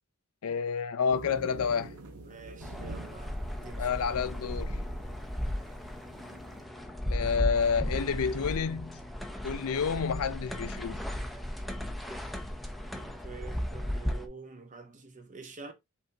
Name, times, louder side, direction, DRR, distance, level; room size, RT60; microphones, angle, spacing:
voice 1, 0.4-2.0 3.8-4.8 7.1-9.0 9.4-11.0, left 6 dB, 70° left, 0.4 m, -29 dB
sound 1, 1.1-6.6, right 2 dB, 75° right, 0.8 m, -47 dB
voice 2, 2.2-4.1 12.9-15.7, right 4 dB, 35° right, 0.9 m, -47 dB
sound 2, 2.6-14.3, equal, ahead, 0.5 m, -35 dB
5.1 x 3.5 x 2.7 m
head